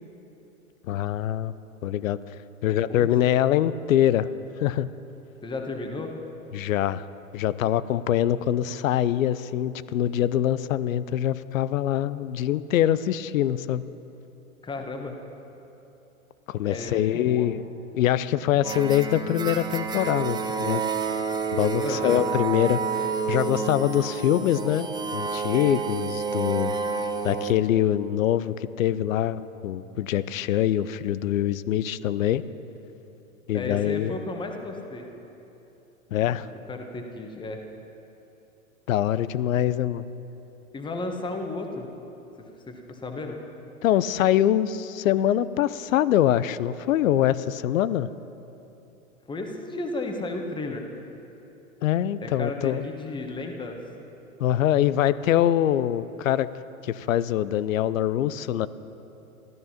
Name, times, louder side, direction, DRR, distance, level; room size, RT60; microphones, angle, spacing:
voice 1, 0.8-1.5 1.8-2.2 2.6-4.3 4.6-4.9 6.5-7.0 7.3-13.8 16.5-17.6 17.9-20.8 21.5-26.8 27.2-32.4 33.5-34.2 36.1-36.5 38.9-40.1 43.8-48.1 51.8-52.8 54.4-56.5 56.8-58.7, left 11 dB, 65° left, 16 dB, 0.7 m, -24 dB
voice 2, 2.7-3.3 5.4-6.1 14.6-15.1 16.6-17.5 21.8-22.2 33.5-35.1 36.7-37.6 40.7-41.9 42.4-43.4 49.3-50.8 52.2-53.8, left 2 dB, 10° left, 3 dB, 1.2 m, -34 dB
sound 1, 18.6-27.5, right 5 dB, 10° right, 0.6 m, -29 dB
14.0 x 12.5 x 5.8 m, 2.9 s
hypercardioid pair, 110°, 43 cm